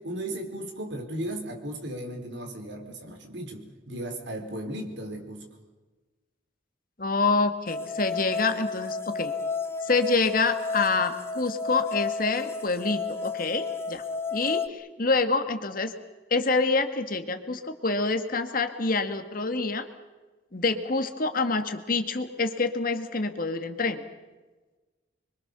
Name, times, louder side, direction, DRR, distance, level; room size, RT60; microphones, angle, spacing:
voice 1, 0.0-5.5, right 1 dB, 60° right, 4 dB, 4.8 m, -36 dB
voice 2, 7.0-9.3 9.8-14.0 14.3-15.9 16.3-19.9 20.5-24.0, left 3 dB, 45° left, 8 dB, 1.9 m, -27 dB
sound 1, 7.7-14.7, left 4 dB, 15° left, 0.9 m, -32 dB
27.0 x 24.0 x 6.9 m, 1.2 s
head